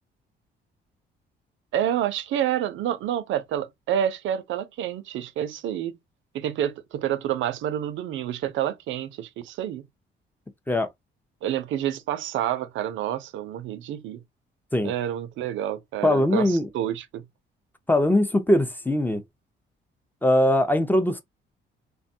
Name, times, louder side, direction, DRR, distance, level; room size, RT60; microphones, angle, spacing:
voice 1, 1.7-6.0 6.3-9.9 11.4-14.2 14.8-17.2, right 10 dB, 75° right, 0.4 m, -28 dB
voice 2, 16.0-16.7 17.9-19.2 20.2-21.2, left 1 dB, 10° left, 0.5 m, -21 dB
3.4 x 2.2 x 2.6 m
cardioid pair, 90°, 20 cm